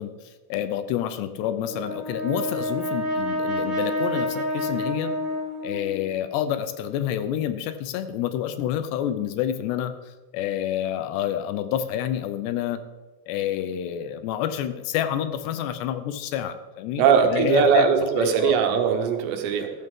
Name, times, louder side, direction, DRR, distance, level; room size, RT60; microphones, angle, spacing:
voice 1, 0.0-5.1 5.6-9.9 10.3-12.8 13.3-17.9 18.2-18.6, left 10 dB, 80° left, 11 dB, 2.8 m, -28 dB
Brass instrument, 1.7-6.1, left 1 dB, ahead, 3.0 m, -28 dB
voice 2, 17.0-19.7, right 7 dB, 80° right, 5 dB, 3.4 m, -20 dB
13.5 x 12.5 x 3.7 m, 1.2 s
omnidirectional pair, 4.9 m